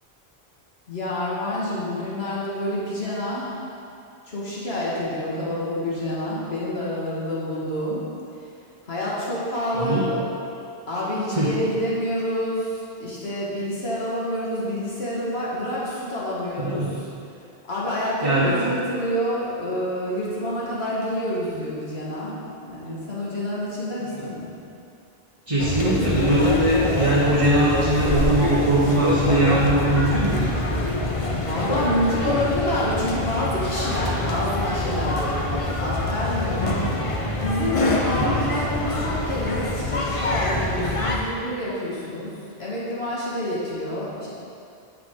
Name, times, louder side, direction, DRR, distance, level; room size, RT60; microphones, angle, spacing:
voice 1, 0.9-3.5 4.2-8.0 8.4-8.5 8.8-10.2 10.9-17.1 17.6-24.5 31.4-42.3 42.6-44.3, left 1 dB, 80° left, -7 dB, 2.1 m, -28 dB
voice 2, 9.7-10.1 11.3-11.5 16.6-16.9 18.2-18.5 25.5-30.4 32.3-32.5 38.2-38.4, right 1 dB, 35° right, -7 dB, 1.1 m, -21 dB
sound 1, 25.6-41.2, left 1 dB, 35° left, 0.8 m, -25 dB
9.6 x 7.5 x 3.8 m, 2.6 s
omnidirectional pair, 1.0 m